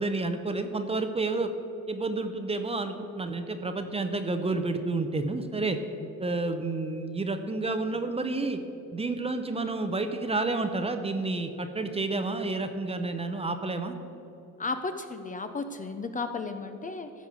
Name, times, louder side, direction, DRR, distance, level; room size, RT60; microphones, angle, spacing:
voice 1, 0.0-1.5 1.9-5.8 6.2-8.6 8.9-14.0, right 3 dB, 20° right, 8 dB, 0.6 m, -30 dB
voice 2, 14.6-17.1, left 3 dB, 25° left, 8 dB, 0.5 m, -34 dB
14.0 x 5.3 x 6.5 m, 3.0 s
cardioid pair, 125°, 32 cm